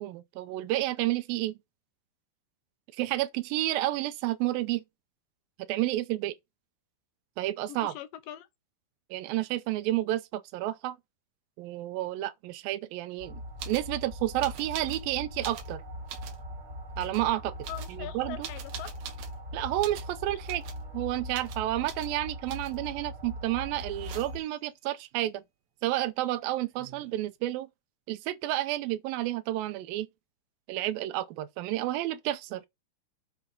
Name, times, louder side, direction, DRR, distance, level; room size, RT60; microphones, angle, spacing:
voice 1, 0.0-1.6 3.0-4.8 5.7-6.3 7.4-7.9 9.1-11.0 11.6-13.4 13.7-15.8 17.0-17.5 17.9-18.5 19.5-20.6 20.9-25.4 25.8-27.7 28.1-30.1 30.7-32.6, right 15 dB, 80° right, 2.3 m, -30 dB
voice 2, 7.7-8.5 17.7-18.9, left 12 dB, 75° left, 2.1 m, -42 dB
sound 1, 13.2-24.4, equal, 25° right, 1.7 m, -41 dB
sound 2, 13.6-13.9 14.4-15.0 15.3-16.4 17.0-17.3 17.6-19.4 19.8-20.1 20.4-20.8 21.3-21.6 21.9-22.1 22.5-22.9 23.8-24.5 26.3-26.4 26.6-27.2, right 8 dB, 60° right, 1.8 m, -44 dB
8.2 x 5.0 x 5.4 m
omnidirectional pair, 4.5 m